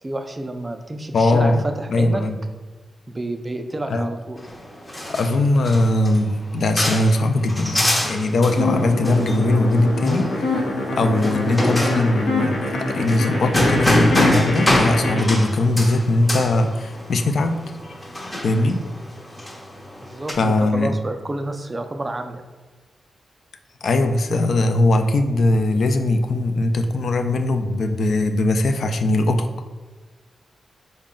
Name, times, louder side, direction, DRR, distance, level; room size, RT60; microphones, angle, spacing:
voice 1, 0.0-2.2 3.1-4.4 20.0-22.4, right 2 dB, 25° right, 6 dB, 0.3 m, -29 dB
voice 2, 1.1-1.6 1.9-2.4 3.9-4.1 5.1-17.9 18.4-18.8 20.4-21.0 23.8-29.5, left 2 dB, 65° left, 6 dB, 0.3 m, -20 dB
sound 1, 4.4-20.3, left 1 dB, 15° left, 0.6 m, -26 dB
sound 2, 8.5-15.2, left 2 dB, 90° left, 0.8 m, -24 dB
3.9 x 2.1 x 3.7 m, 1.4 s
wide cardioid pair, 105°, 0 cm